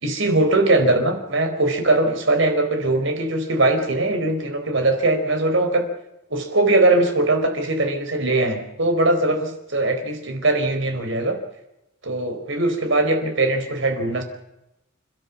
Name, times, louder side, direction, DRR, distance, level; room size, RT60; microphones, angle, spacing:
voice 1, 0.0-5.8 6.3-11.4 12.0-14.2, right 2 dB, 65° right, 6 dB, 4.4 m, -20 dB
29.0 x 14.0 x 7.2 m, 0.90 s
head